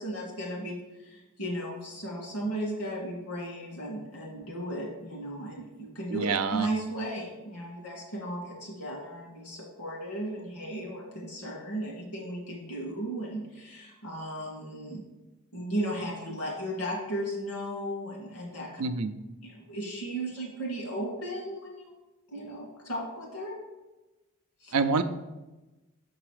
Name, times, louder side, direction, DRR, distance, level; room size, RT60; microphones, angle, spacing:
voice 1, 0.0-15.0 15.5-18.8 19.4-22.0 22.3-23.6 24.6-24.7, right 1 dB, 90° left, -2 dB, 2.3 m, -35 dB
voice 2, 6.1-6.7 18.8-19.2 24.7-25.0, right 4 dB, 80° right, 10 dB, 0.5 m, -27 dB
6.9 x 4.0 x 4.8 m, 1.1 s
head